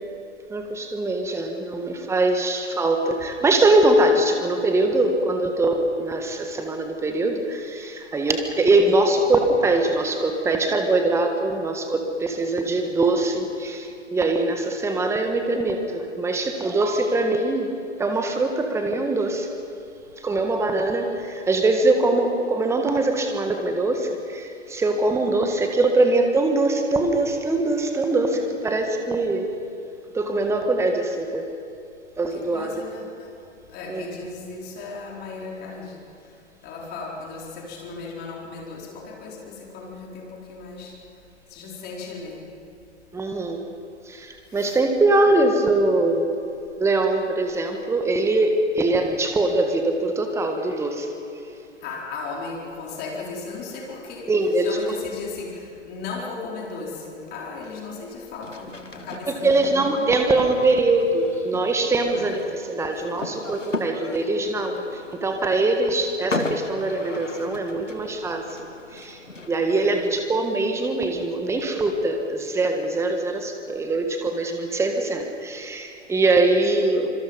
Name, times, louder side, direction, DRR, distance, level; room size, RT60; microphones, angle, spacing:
voice 1, 0.5-17.7 18.0-19.5 20.2-29.5 30.1-31.5 32.2-32.7 33.9-34.0 43.1-43.7 44.1-46.3 46.8-51.1 54.3-54.9 59.4-69.2 69.5-77.1, right 2 dB, 5° right, 4 dB, 1.7 m, -22 dB
voice 2, 32.3-33.4 33.7-42.5 44.5-44.8 51.8-60.1 62.0-62.3 69.7-69.9, left 4 dB, 25° left, -2 dB, 4.5 m, -36 dB
sound 1, 58.4-71.3, left 2 dB, 90° left, 1.8 m, -37 dB
26.5 x 25.5 x 5.4 m, 2.6 s
figure-of-eight pair, 115°, 37 cm